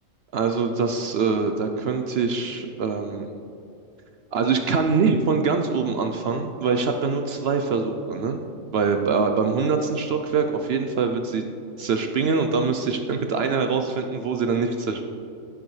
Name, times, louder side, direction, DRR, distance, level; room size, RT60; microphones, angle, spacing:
voice 1, 0.3-3.3 4.3-8.4 8.7-11.4 11.8-15.0, right 5 dB, 60° right, 5 dB, 0.7 m, -24 dB
13.5 x 7.1 x 3.2 m, 2.7 s
omnidirectional pair, 1.3 m